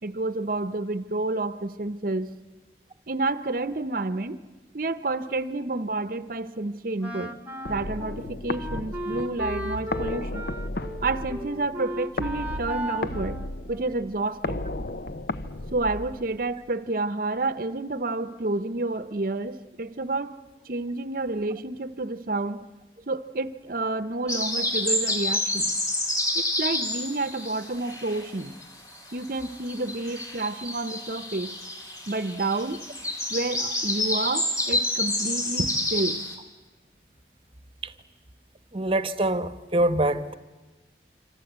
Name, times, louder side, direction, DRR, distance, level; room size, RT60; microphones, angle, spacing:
voice 1, 0.0-2.3 3.1-4.4 4.7-7.4 7.7-10.5 11.0-13.4 13.7-14.6 15.7-20.4 20.6-22.7 23.1-25.7 26.3-28.5 29.1-31.6 32.1-32.8 33.3-36.2, right 2 dB, 50° right, 0.8 m, -29 dB
Wind instrument woodwind instrument, 7.0-14.2, equal, 10° right, 1.3 m, -36 dB
sound 1, 7.7-16.6, left 2 dB, 60° left, 0.8 m, -34 dB
sound 2, 24.3-28.6 28.9-36.4, left 1 dB, 20° left, 3.5 m, -29 dB
voice 2, 38.7-40.4, right 1 dB, 30° right, 1.0 m, -24 dB
26.5 x 26.0 x 8.1 m
head